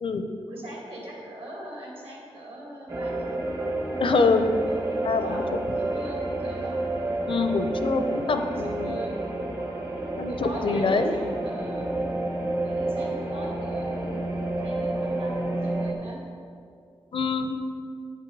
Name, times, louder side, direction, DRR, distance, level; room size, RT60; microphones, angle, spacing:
voice 1, 0.5-3.3 4.2-6.8 8.0-9.2 10.3-12.0 12.6-14.3 14.6-16.2, right 1 dB, 65° right, -2 dB, 2.0 m, -40 dB
sound 1, 2.9-15.9, right 2 dB, 30° right, 0.9 m, -30 dB
voice 2, 4.0-4.5 5.0-5.4 7.3-9.0 10.2-11.2 17.1-17.6, left 4 dB, 60° left, 7 dB, 0.5 m, -25 dB
7.8 x 6.8 x 4.6 m, 2.3 s
wide cardioid pair, 145°, 10 cm